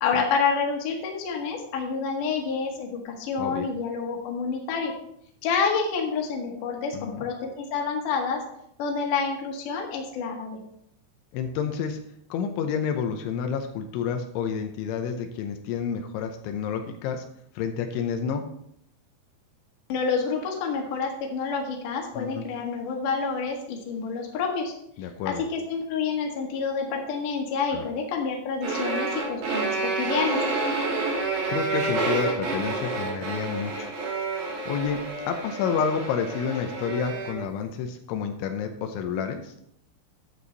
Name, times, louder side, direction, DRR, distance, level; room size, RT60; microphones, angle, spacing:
voice 1, 0.0-4.9 5.4-8.4 8.8-10.6 19.9-24.7 25.3-30.4, left 5 dB, 55° left, 1 dB, 2.8 m, -28 dB
voice 2, 6.9-7.3 11.3-12.0 12.3-17.2 17.6-18.4 22.1-22.4 25.0-25.4 27.7-27.9 31.5-33.9 34.7-35.0 35.3-39.5, left 7 dB, 85° left, 5 dB, 3.2 m, -29 dB
sound 1, 28.6-37.4, right 3 dB, 55° right, 3.9 m, -29 dB
11.5 x 8.3 x 4.1 m, 0.73 s
omnidirectional pair, 5.4 m